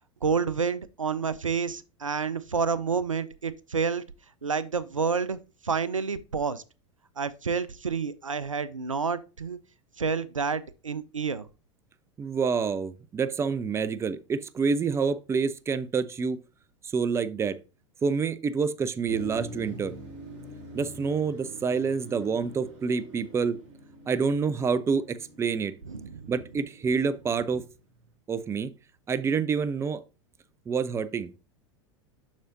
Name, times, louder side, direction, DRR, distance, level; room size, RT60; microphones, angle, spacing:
voice 1, 0.2-4.0 4.4-5.4 5.6-6.6 7.2-9.6 10.0-11.5 25.9-26.3, right 5 dB, 90° right, 0.5 m, -29 dB
voice 2, 12.2-16.4 16.9-17.6 18.0-19.9 20.7-23.6 24.1-25.7 26.3-27.6 28.3-28.7 29.1-30.0 30.7-31.3, right 5 dB, 15° right, 0.5 m, -27 dB
Motor vehicle (road), 19.1-28.0, right 2 dB, 50° right, 2.9 m, -45 dB
7.2 x 6.3 x 2.6 m
figure-of-eight pair, 85°, 16 cm